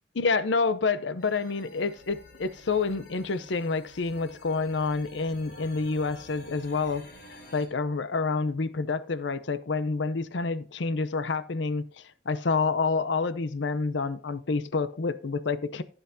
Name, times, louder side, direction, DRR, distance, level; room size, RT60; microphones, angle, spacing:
voice 1, 0.2-7.0 7.3-11.9 12.3-15.8, left 4 dB, 75° left, 0.6 m, -28 dB
sound 1, 1.2-7.7, left 1 dB, 55° left, 3.2 m, -50 dB
15.0 x 8.1 x 2.7 m
head